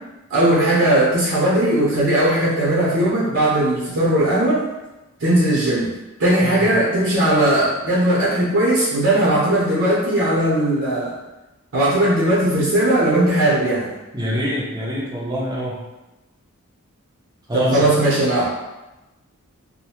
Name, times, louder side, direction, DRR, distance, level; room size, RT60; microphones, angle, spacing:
voice 1, 0.3-4.6 5.2-5.9 6.2-11.1 11.7-13.9 17.5-18.5, right 1 dB, 60° right, -8 dB, 0.8 m, -18 dB
voice 2, 14.1-15.8 17.5-17.9, equal, 15° right, -6 dB, 0.6 m, -25 dB
2.6 x 2.2 x 2.9 m, 1.0 s
head